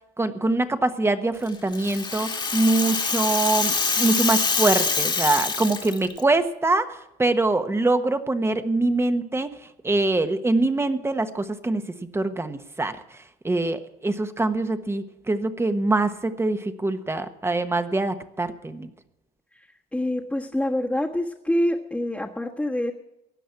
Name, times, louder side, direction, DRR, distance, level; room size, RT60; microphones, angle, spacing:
voice 1, 0.2-9.5 9.8-11.8 12.1-13.0 13.4-18.9, right 2 dB, 15° right, 10 dB, 1.1 m, -24 dB
Rattle (instrument), 1.5-6.2, left 4 dB, 25° left, 1.6 m, -25 dB
voice 2, 19.9-22.9, left 1 dB, 5° left, -2 dB, 1.4 m, -26 dB
16.5 x 10.0 x 5.9 m, 0.89 s
cardioid pair, 110°, 17 cm